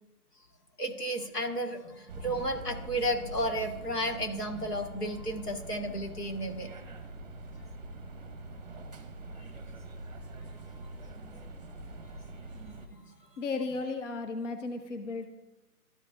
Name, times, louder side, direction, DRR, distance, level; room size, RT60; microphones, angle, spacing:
voice 1, 0.8-6.7 11.3-11.4 12.6-13.0, equal, 85° left, 2 dB, 1.8 m, -33 dB
sound 1, 2.1-12.9, right 2 dB, 25° right, 0.8 m, -44 dB
voice 2, 13.4-15.3, left 3 dB, 50° left, 7 dB, 0.7 m, -34 dB
13.0 x 5.2 x 2.5 m, 1.1 s
figure-of-eight pair, 150°, 46 cm